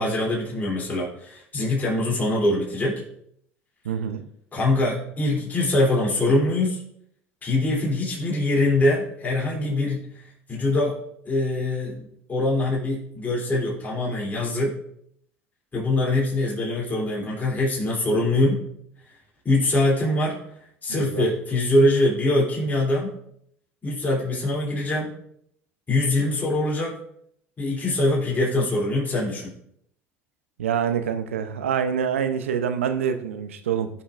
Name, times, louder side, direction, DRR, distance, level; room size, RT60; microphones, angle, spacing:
voice 1, 0.0-3.0 4.5-6.8 7.4-10.0 10.5-11.0 11.3-14.8 15.7-18.6 19.4-20.4 20.8-23.1 23.8-25.1 25.9-26.9 27.6-29.5, left 1 dB, 25° left, -5 dB, 3.1 m, -23 dB
voice 2, 3.8-4.2 20.9-21.2 30.6-33.9, right 8 dB, 85° right, 8 dB, 0.7 m, -26 dB
13.0 x 5.6 x 2.5 m, 0.70 s
hypercardioid pair, 75°, 7 cm